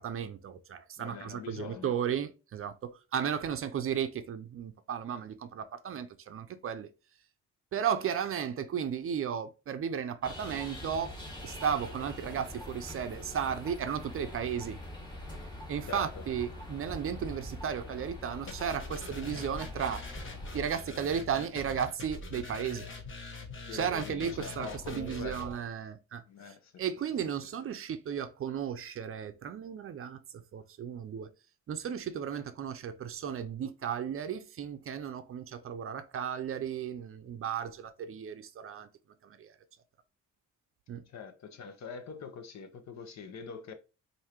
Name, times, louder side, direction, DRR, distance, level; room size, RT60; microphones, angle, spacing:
voice 1, 0.0-6.9 7.7-11.1 11.4-14.8 15.7-20.0 20.5-22.9 23.7-30.2 30.5-31.3 31.7-38.9 39.2-39.5 40.9-41.0, right 8 dB, 45° right, 0.5 m, -34 dB
voice 2, 1.0-1.9 15.9-16.3 23.7-25.4 26.3-26.8 41.1-43.7, left 6 dB, 65° left, 0.9 m, -44 dB
sound 1, 10.2-20.6, left 1 dB, 15° left, 1.8 m, -44 dB
sound 2, 18.5-25.5, left 3 dB, 40° left, 1.3 m, -43 dB
4.7 x 2.7 x 2.9 m
cardioid pair, 90°, 30 cm